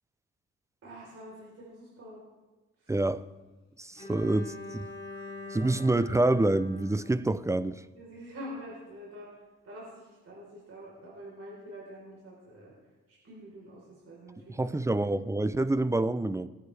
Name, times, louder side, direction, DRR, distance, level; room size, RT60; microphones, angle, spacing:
voice 1, 0.8-2.2 2.8-2.9 3.9-4.3 5.4-5.6 7.9-9.3 9.6-12.7 13.1-14.8, equal, 55° right, 4.2 m, -46 dB
voice 2, 2.9-3.2 3.8-4.9 5.5-7.8 14.5-16.5, right 2 dB, 10° right, 0.4 m, -27 dB
Bowed string instrument, 4.0-8.0, left 3 dB, 20° left, 2.7 m, -44 dB
19.0 x 8.7 x 3.4 m
cardioid pair, 90°, 29 cm